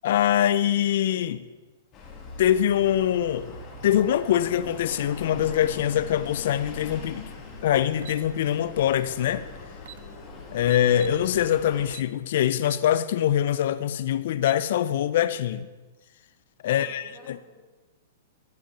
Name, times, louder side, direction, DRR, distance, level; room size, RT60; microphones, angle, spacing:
voice 1, 0.0-1.4 2.4-3.6 3.8-7.2 7.6-9.4 10.5-15.7 16.6-17.4, left 11 dB, 60° left, 0.4 m, -23 dB
sound 1, 1.9-11.9, left 3 dB, 25° left, 1.9 m, -42 dB
sound 2, 8.0-8.2 9.4-9.5 9.8-10.0 10.7-11.2 11.9-12.1 12.6-12.9 13.3-13.4 14.2-14.6, right 12 dB, 65° right, 0.4 m, -43 dB
voice 2, 16.6-17.6, right 1 dB, 15° right, 1.9 m, -51 dB
11.5 x 5.4 x 5.2 m
hypercardioid pair, 150°, 0 cm